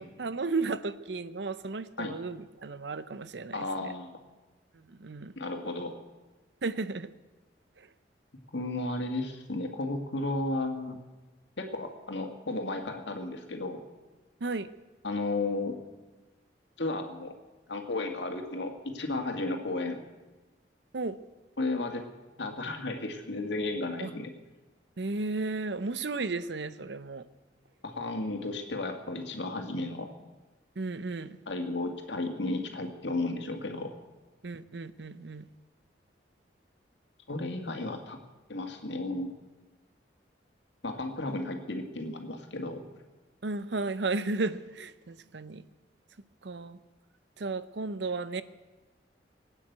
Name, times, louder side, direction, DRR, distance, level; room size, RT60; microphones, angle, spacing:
voice 1, 0.0-3.9 4.9-5.3 6.6-7.1 7.8-7.9 14.4-14.7 20.9-21.2 24.0-24.1 25.0-27.2 30.8-31.4 34.4-35.5 43.4-45.6 46.4-46.8 47.4-48.4, right 3 dB, 75° right, 14 dB, 0.7 m, -34 dB
voice 2, 3.5-4.2 5.4-5.9 8.5-11.0 11.6-13.8 15.0-15.8 16.8-17.3 17.7-20.0 21.6-22.1 22.4-24.3 27.8-30.1 31.5-33.9 37.3-38.2 38.5-39.3 40.8-42.8, left 2 dB, 80° left, 4 dB, 2.1 m, -33 dB
19.5 x 9.1 x 8.1 m, 1.2 s
head